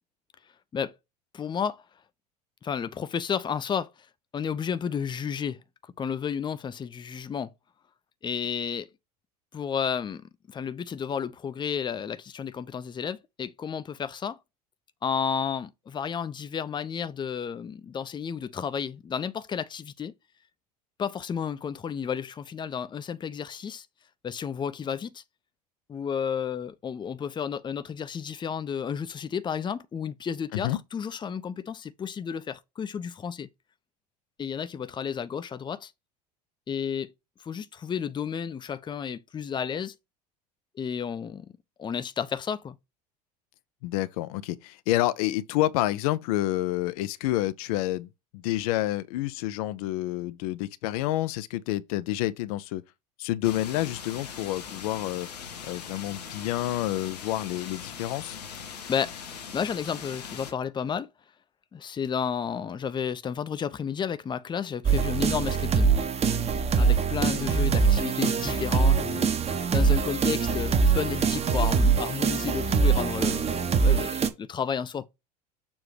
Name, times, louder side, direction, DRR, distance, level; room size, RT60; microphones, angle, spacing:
voice 1, 1.3-1.8 2.6-3.9 4.3-7.5 8.2-8.9 9.5-14.4 15.0-20.1 21.0-23.9 24.2-25.2 25.9-33.5 34.4-35.9 36.7-37.1 37.4-39.9 40.8-41.5 41.8-42.8 58.9-59.1 59.5-61.1 61.7-65.9 66.8-69.3 69.7-75.1, left 7 dB, 20° left, 0.6 m, -32 dB
voice 2, 43.8-52.8 53.2-55.3 55.6-58.4 67.3-67.5, left 15 dB, 65° left, 0.6 m, -29 dB
sound 1, 53.4-60.5, left 7 dB, 80° left, 1.1 m, -41 dB
sound 2, 64.8-74.3, right 5 dB, 30° right, 1.1 m, -23 dB
7.1 x 2.8 x 4.9 m
hypercardioid pair, 75°, 20 cm